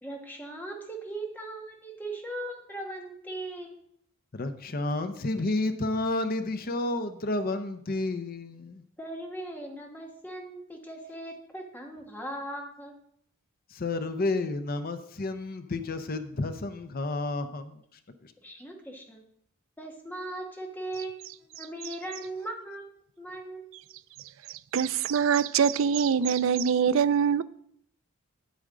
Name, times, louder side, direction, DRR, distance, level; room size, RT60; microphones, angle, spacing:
voice 1, 0.0-3.8 9.0-12.9 18.4-19.2 19.8-22.9 23.2-23.9, right 1 dB, 10° left, 1.3 m, -39 dB
voice 2, 4.3-8.8 13.7-17.8 18.2-18.3, left 2 dB, 45° left, 0.6 m, -31 dB
voice 3, 24.7-27.4, right 7 dB, 65° right, 0.4 m, -24 dB
8.7 x 8.4 x 3.7 m
head